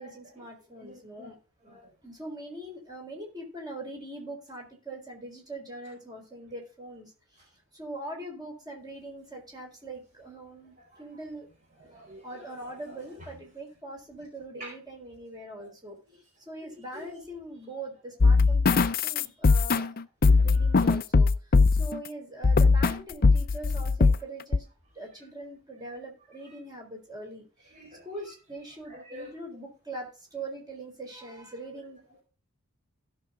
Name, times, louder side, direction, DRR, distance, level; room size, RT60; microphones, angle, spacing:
voice 1, 0.0-1.4 2.0-11.5 12.2-16.0 16.5-20.0 20.4-24.7 24.9-27.7 28.0-32.2, right 1 dB, 20° right, 4.1 m, -42 dB
voice 2, 0.8-1.3 1.6-1.9 10.8-11.0 11.8-12.8 14.6-14.7 15.6-15.7 16.5-17.2 20.3-20.5 20.7-20.9 26.5-26.6 27.7-28.3 28.9-29.3, equal, 35° right, 4.5 m, -48 dB
sound 1, 18.2-22.0 22.4-23.0 23.2-24.2 24.5-24.6, left 4 dB, 40° left, 0.5 m, -20 dB
16.0 x 6.2 x 3.7 m
head